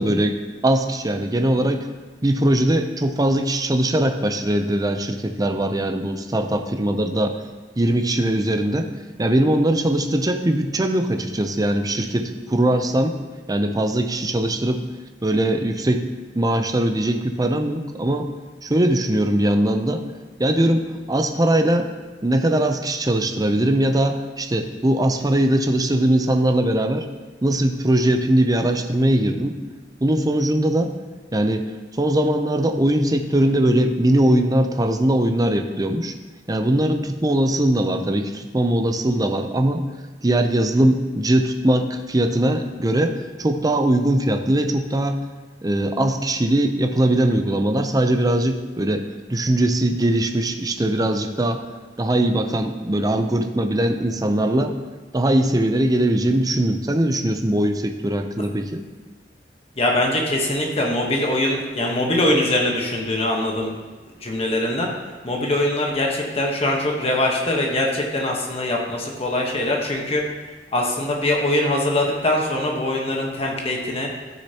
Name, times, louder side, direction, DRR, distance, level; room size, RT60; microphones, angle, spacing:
voice 1, 0.0-1.9 2.2-7.4 7.8-8.9 9.2-13.2 13.5-14.8 15.2-16.0 16.3-18.3 18.6-20.0 20.4-21.9 22.2-27.1 27.4-29.6 30.0-30.9 31.3-31.7 32.0-36.1 36.5-39.9 40.2-45.2 45.6-51.6 52.0-54.7 55.1-58.8, right 1 dB, 20° right, 6 dB, 0.6 m, -20 dB
voice 2, 59.8-63.7 64.2-64.9 65.2-70.2 70.7-74.1, left 1 dB, 35° left, 0 dB, 1.2 m, -22 dB
13.0 x 6.5 x 2.9 m, 1.3 s
head